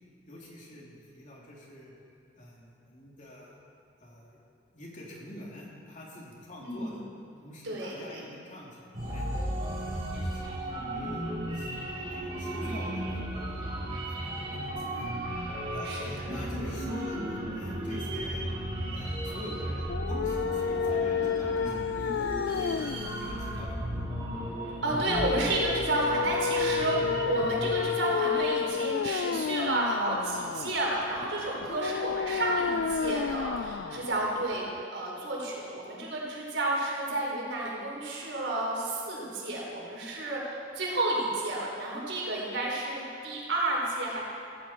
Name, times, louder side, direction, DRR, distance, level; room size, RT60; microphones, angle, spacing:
voice 1, 0.3-1.9 2.4-3.6 4.0-4.4 4.7-7.0 7.4-9.3 9.7-15.1 15.7-18.5 18.9-22.9 23.1-24.1, equal, 45° left, -4 dB, 2.9 m, -45 dB
voice 2, 6.6-7.0 7.6-8.2 15.8-16.0 24.8-34.7 34.9-44.2, right 2 dB, 80° right, -4 dB, 4.2 m, -31 dB
sound 1, 8.9-27.8, right 1 dB, 30° right, 4.7 m, -35 dB
sound 2, 19.8-34.8, left 6 dB, 65° left, 0.3 m, -31 dB
16.0 x 15.0 x 4.4 m, 2.4 s
head